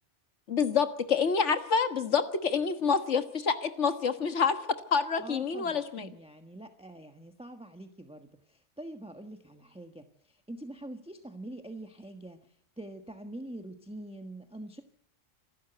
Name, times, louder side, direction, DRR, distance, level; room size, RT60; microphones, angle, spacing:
voice 1, 0.5-4.6 4.9-6.1, left 6 dB, 75° left, 9 dB, 1.8 m, -27 dB
voice 2, 5.2-14.8, right 1 dB, 5° right, 6 dB, 1.2 m, -45 dB
27.0 x 12.0 x 8.0 m, 0.65 s
omnidirectional pair, 1.2 m